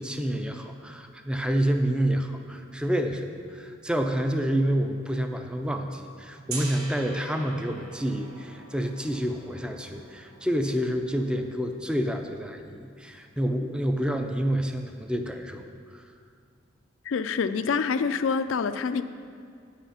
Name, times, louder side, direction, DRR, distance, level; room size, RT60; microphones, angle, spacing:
voice 1, 0.0-15.6 15.9-16.0, equal, 5° right, 6 dB, 0.4 m, -28 dB
Gong, 6.5-12.4, right 3 dB, 75° right, 1.2 m, -44 dB
voice 2, 17.1-19.0, left 5 dB, 70° left, 11 dB, 0.4 m, -26 dB
9.1 x 5.8 x 5.7 m, 2.2 s
head